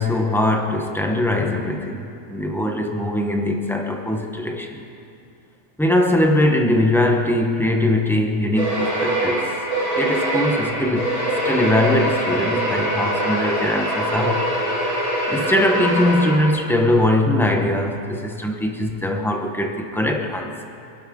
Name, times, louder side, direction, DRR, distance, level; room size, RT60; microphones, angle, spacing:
voice 1, 0.0-4.8 5.8-9.5 10.0-11.1 11.4-14.5 15.3-20.5, left 1 dB, ahead, 2 dB, 0.9 m, -21 dB
sound 1, 8.6-16.8, right 1 dB, 60° right, 5.1 m, -23 dB
26.5 x 12.0 x 3.8 m, 2.5 s
omnidirectional pair, 1.8 m